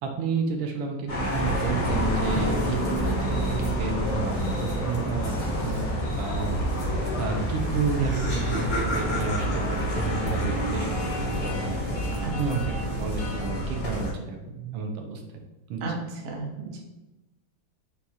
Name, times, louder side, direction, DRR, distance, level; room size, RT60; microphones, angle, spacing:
voice 1, 0.0-6.6 7.2-12.0 12.4-15.2 15.7-15.9, right 4 dB, 85° right, 3 dB, 1.4 m, -31 dB
sound 1, 1.1-14.1, equal, 60° left, 0.3 m, -28 dB
sound 2, 1.8-7.6, left 1 dB, 80° left, 1.9 m, -36 dB
Laughter, 7.5-7.6 7.7-11.4, equal, 45° left, 1.3 m, -34 dB
voice 2, 15.8-16.8, right 3 dB, 70° right, -1 dB, 0.5 m, -33 dB
6.1 x 2.3 x 2.7 m, 1.0 s
omnidirectional pair, 2.2 m